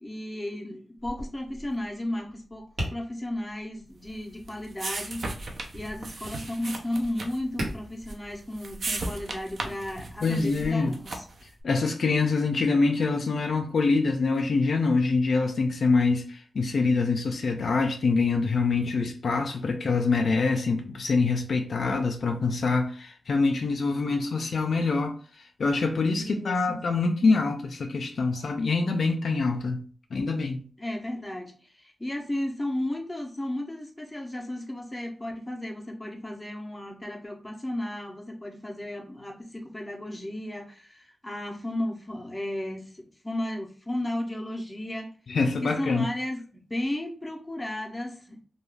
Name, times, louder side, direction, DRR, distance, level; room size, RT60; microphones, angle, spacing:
voice 1, 0.0-5.3 5.7-11.3 24.1-24.2 26.2-26.8 28.3-28.4 30.8-45.1 45.6-48.4, left 1 dB, 10° left, 0.5 m, -34 dB
Tap, 1.0-10.7, right 1 dB, 80° right, 1.0 m, -42 dB
sound 1, 4.0-11.5, right 2 dB, 50° right, 0.4 m, -37 dB
voice 2, 10.2-10.9 11.6-25.1 25.6-29.8 30.1-30.6 45.3-46.0, left 4 dB, 60° left, 0.3 m, -25 dB
2.3 x 2.3 x 3.1 m
wide cardioid pair, 135°, 0 cm